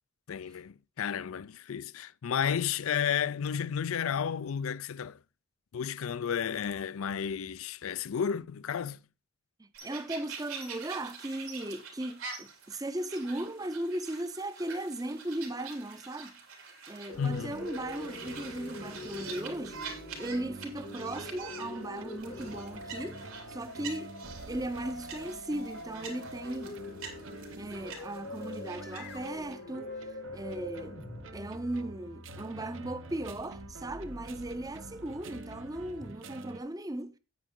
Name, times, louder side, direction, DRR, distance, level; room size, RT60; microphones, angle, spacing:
voice 1, 0.3-5.2 5.7-9.0 17.2-17.5, left 7 dB, 75° left, 0.4 m, -32 dB
voice 2, 9.6-16.4 16.9-24.1 24.5-26.8 27.6-31.0 31.3-37.1, right 1 dB, 15° right, 0.6 m, -37 dB
sound 1, 9.7-29.3, right 5 dB, 80° right, 3.4 m, -46 dB
sound 2, 17.1-36.1, left 3 dB, 50° left, 1.0 m, -45 dB
sound 3, 17.1-36.6, right 3 dB, 65° right, 0.8 m, -48 dB
9.4 x 9.1 x 3.7 m
head